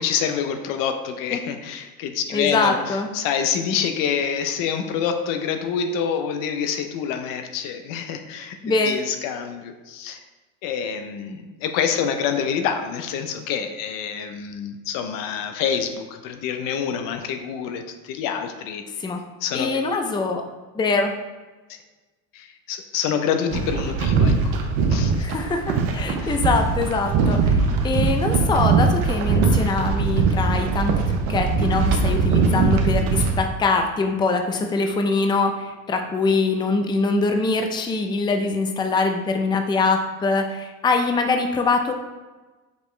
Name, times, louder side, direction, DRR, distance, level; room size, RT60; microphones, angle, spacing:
voice 1, 0.0-8.6 8.9-10.2 10.6-18.8 19.4-19.8 22.3-24.6 24.9-25.3 26.2-26.4, left 7 dB, 70° left, 7 dB, 0.6 m, -27 dB
voice 2, 2.3-3.1 8.6-9.0 19.0-19.2 19.5-20.4 20.7-21.1 25.2-41.9, left 3 dB, 15° left, 5 dB, 0.4 m, -23 dB
sound 1, 23.5-33.4, right 4 dB, 75° right, 0.8 m, -21 dB
5.2 x 3.0 x 3.2 m, 1.2 s
supercardioid pair, 85°, 35 cm